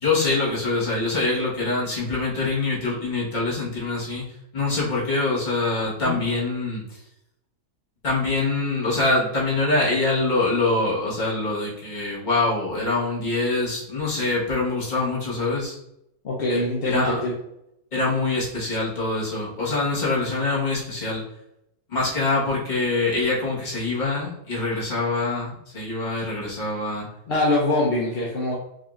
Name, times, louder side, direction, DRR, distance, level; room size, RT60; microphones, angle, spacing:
voice 1, 0.0-4.2 4.5-6.8 8.0-15.8 16.5-17.2 17.9-21.2 21.9-27.1, left 3 dB, 30° left, -6 dB, 1.3 m, -24 dB
voice 2, 16.2-17.3 27.3-28.5, left 1 dB, 50° left, -4 dB, 0.7 m, -23 dB
4.9 x 2.7 x 2.4 m, 0.82 s
omnidirectional pair, 1.6 m